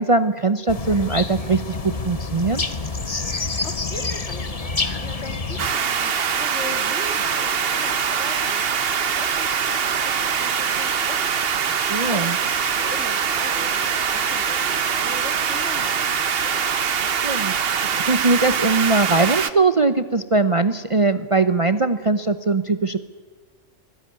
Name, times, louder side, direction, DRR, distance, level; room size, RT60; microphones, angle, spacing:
voice 1, 0.0-2.6 11.7-12.3 17.2-23.0, right 3 dB, 35° right, 11 dB, 0.7 m, -21 dB
sound 1, 0.7-5.7, left 3 dB, 30° left, 1.3 m, -27 dB
voice 2, 3.6-16.7, left 2 dB, 65° left, 7 dB, 2.6 m, -39 dB
sound 2, 5.6-19.5, right 7 dB, 55° right, 1.1 m, -23 dB
24.0 x 17.0 x 9.5 m, 1.5 s
omnidirectional pair, 1.3 m